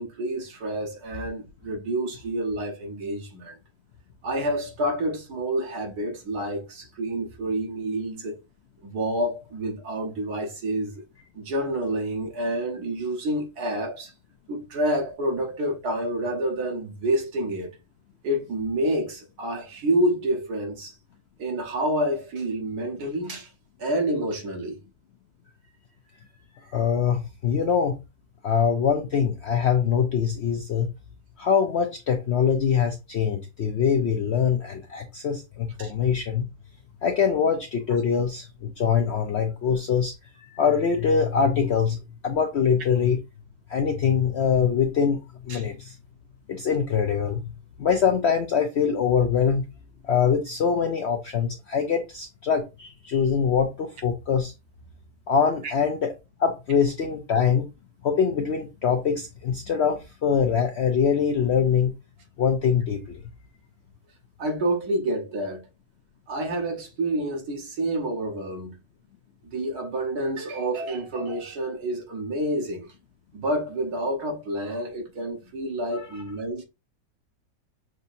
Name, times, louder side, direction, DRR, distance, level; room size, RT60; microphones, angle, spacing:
voice 1, 0.0-3.6 4.2-8.4 8.8-11.0 11.3-14.1 14.5-17.7 18.2-21.0 21.4-23.5 23.8-24.8 35.8-35.9 45.5-45.7 64.4-65.7 66.3-68.8 69.4-72.9 73.3-76.6, right 1 dB, 70° right, 1.7 m, -28 dB
voice 2, 26.7-27.9 28.4-30.9 31.4-36.5 37.0-42.0 42.2-43.2 43.7-45.2 45.4-46.0 46.5-47.4 47.8-49.6 50.1-54.5 55.3-56.1 56.4-57.7 58.0-61.9 62.4-63.2 75.9-76.1, left 7 dB, 70° left, 0.6 m, -23 dB
6.2 x 2.7 x 2.6 m
omnidirectional pair, 1.8 m